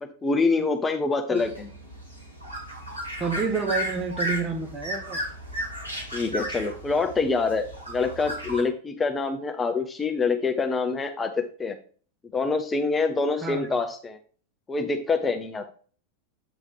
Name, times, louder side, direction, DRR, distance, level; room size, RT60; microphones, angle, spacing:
voice 1, 0.0-1.7 6.1-11.3 11.6-11.8 12.3-14.2 14.7-15.6, left 4 dB, 15° left, 0.6 m, -26 dB
sound 1, 1.3-8.6, equal, 85° right, 2.3 m, -34 dB
voice 2, 3.2-5.2 13.4-13.7, right 5 dB, 20° right, 1.0 m, -29 dB
8.1 x 3.2 x 4.7 m
figure-of-eight pair, 90°, 0 cm